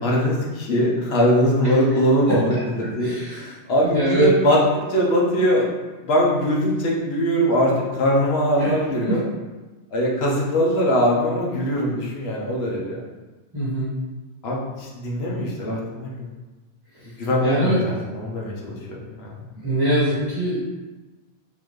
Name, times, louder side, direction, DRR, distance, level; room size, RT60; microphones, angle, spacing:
voice 1, 0.0-5.7 6.0-9.2 9.9-13.0 14.4-16.3 17.2-17.8 18.1-19.3, equal, 65° left, -3 dB, 1.1 m, -21 dB
voice 2, 2.3-3.5 3.8-4.3 8.6-8.8 9.1-9.2 13.5-13.9 16.9-17.1 17.4-17.8 19.6-20.6, right 1 dB, 20° right, -10 dB, 1.3 m, -23 dB
4.1 x 2.6 x 3.1 m, 1.2 s
omnidirectional pair, 1.1 m